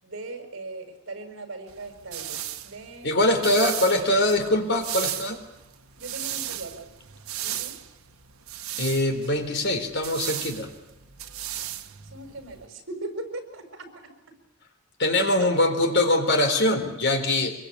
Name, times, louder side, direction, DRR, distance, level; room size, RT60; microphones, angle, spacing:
voice 1, 0.0-4.1 5.9-6.9 7.4-7.8 12.0-14.3 15.1-15.7, right 2 dB, 65° right, 6 dB, 5.9 m, -39 dB
sound 1, 1.7-12.7, right 12 dB, 90° right, 1.5 m, -36 dB
voice 2, 3.0-5.4 8.8-10.7 15.0-17.5, left 1 dB, 55° left, 6 dB, 4.2 m, -23 dB
25.0 x 23.0 x 8.7 m, 0.92 s
head